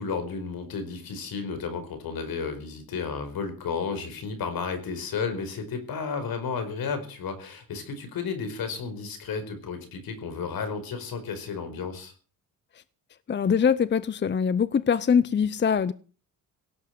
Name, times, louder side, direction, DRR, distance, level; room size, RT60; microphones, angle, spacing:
voice 1, 0.0-12.1, left 5 dB, 70° left, 4.9 m, -33 dB
voice 2, 13.3-15.9, left 7 dB, 30° left, 0.7 m, -23 dB
17.5 x 8.3 x 7.7 m
cardioid pair, 90°, 37 cm